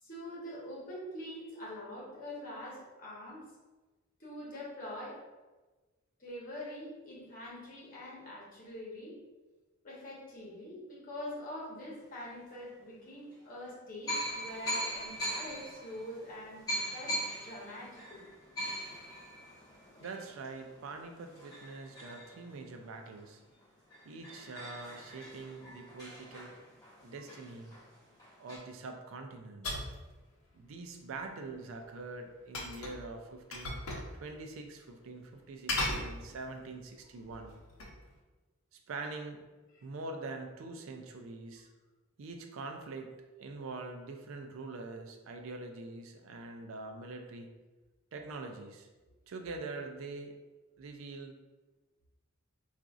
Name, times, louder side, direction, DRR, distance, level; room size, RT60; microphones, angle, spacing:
voice 1, 0.0-3.4 4.2-5.2 6.2-9.2 9.8-16.6 16.9-17.1 17.4-18.3 27.1-27.2, left 1 dB, 40° left, -6 dB, 1.0 m, -44 dB
sound 1, 12.4-12.5 13.3-13.4 14.1-23.2 23.6-23.7 23.9-28.6, equal, 15° left, 0.9 m, -41 dB
voice 2, 20.0-23.4 24.0-26.5 27.0-27.8 28.4-29.7 30.5-33.8 34.1-37.6 38.7-39.4 39.8-41.7 42.2-47.5 48.1-48.9 49.3-50.3 50.8-51.3, right 3 dB, 75° right, 4 dB, 0.4 m, -44 dB
sound 2, 29.6-30.0 32.5-33.0 33.5-34.1 34.4-34.5 35.7-36.6 37.2-38.0, left 2 dB, 80° left, 0.6 m, -36 dB
3.9 x 2.4 x 2.4 m, 1.2 s
head